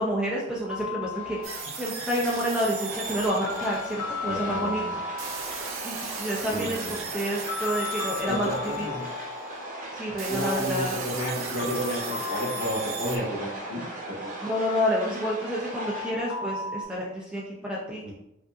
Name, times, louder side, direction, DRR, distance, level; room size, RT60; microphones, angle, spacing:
voice 1, 0.0-4.8 5.8-8.5 8.8-8.9 9.9-11.0 14.4-18.0, equal, 5° right, -5 dB, 0.5 m, -29 dB
sound 1, 0.7-1.8 3.5-5.8 7.5-9.8 11.6-13.9 15.8-16.8, left 4 dB, 60° left, 0.7 m, -36 dB
sound 2, 1.1-16.1, right 1 dB, 40° right, 0.9 m, -38 dB
sound 3, 1.4-4.3 5.2-9.4 10.2-13.2, right 5 dB, 75° right, 0.6 m, -38 dB
voice 2, 4.2-4.9 6.5-7.0 8.3-9.1 10.3-14.3 18.0-18.1, equal, 45° left, -5 dB, 1.3 m, -32 dB
5.1 x 2.6 x 2.3 m, 0.83 s
head